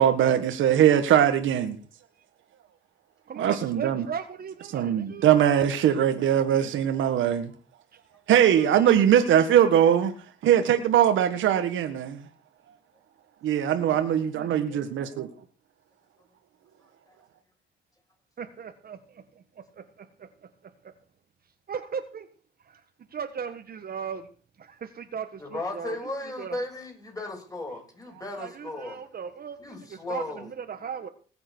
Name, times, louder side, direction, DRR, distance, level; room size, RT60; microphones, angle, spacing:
voice 1, 0.0-1.8 3.4-4.0 4.7-7.5 8.3-10.1 10.4-12.2 13.4-15.3, right 10 dB, 75° right, 1.6 m, -21 dB
voice 2, 3.3-5.3 8.5-9.1 14.3-14.8 18.4-20.3 20.8-20.9 21.7-22.3 22.6-22.8 23.1-24.3 24.6-26.1 26.4-26.6 28.4-29.6 29.9-31.1, right 7 dB, 50° right, 1.5 m, -37 dB
voice 3, 25.4-29.0 29.6-30.5, left 2 dB, 20° left, 7.2 m, -35 dB
20.0 x 7.9 x 6.2 m
cardioid pair, 90°, 20 cm